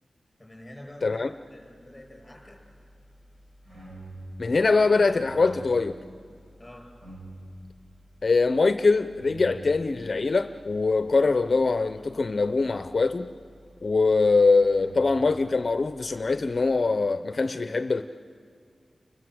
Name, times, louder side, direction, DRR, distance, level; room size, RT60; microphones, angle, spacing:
voice 1, 0.4-2.6 6.6-6.8, left 1 dB, 15° left, 0 dB, 7.2 m, -46 dB
sound 1, 1.4-16.8, right 1 dB, 50° right, 4.6 m, -48 dB
voice 2, 4.4-6.0 8.2-13.3 13.8-18.0, left 3 dB, 45° left, 9 dB, 0.6 m, -23 dB
30.0 x 21.5 x 7.7 m, 2.2 s
wide cardioid pair, 110°, 0 cm